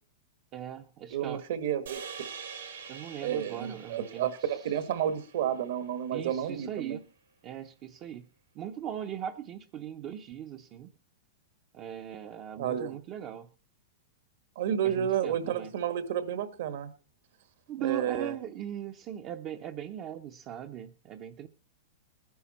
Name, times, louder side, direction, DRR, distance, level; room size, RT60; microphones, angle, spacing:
voice 1, 0.5-1.4 2.9-4.6 6.1-7.0 7.4-8.3 8.5-10.9 11.7-13.5 14.8-15.7 17.7-21.5, right 10 dB, 30° right, 5 dB, 0.6 m, -39 dB
voice 2, 1.1-2.0 3.2-7.0 12.6-13.0 14.5-16.9 17.8-18.3, right 9 dB, 65° right, 12 dB, 1.4 m, -31 dB
sound 1, 1.9-6.3, right 6 dB, 90° right, 4.5 m, -45 dB
20.0 x 10.5 x 4.1 m, 0.35 s
supercardioid pair, 155°, 0 cm